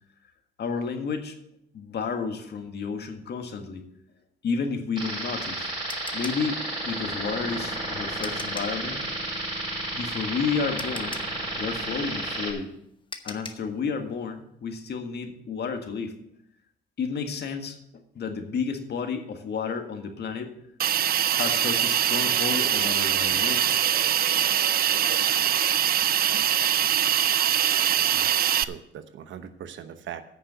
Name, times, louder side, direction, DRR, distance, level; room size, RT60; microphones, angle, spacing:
voice 1, 0.6-1.3 1.7-3.9 4.4-5.7 6.1-9.0 9.9-11.2 11.6-12.7 13.2-16.2 17.0-20.5 21.3-23.7, left 5 dB, 55° left, 5 dB, 1.8 m, -31 dB
sound 1, 5.0-8.8 10.3-10.4 10.8-13.7, left 3 dB, 25° left, 1.1 m, -41 dB
sound 2, 5.0-12.5, right 1 dB, 25° right, 4.8 m, -32 dB
Hiss, 20.8-28.6, right 10 dB, 50° right, 0.5 m, -23 dB
voice 2, 27.6-30.2, right 9 dB, 70° right, 11 dB, 1.0 m, -41 dB
9.7 x 6.6 x 8.0 m, 0.74 s
cardioid pair, 90°, 20 cm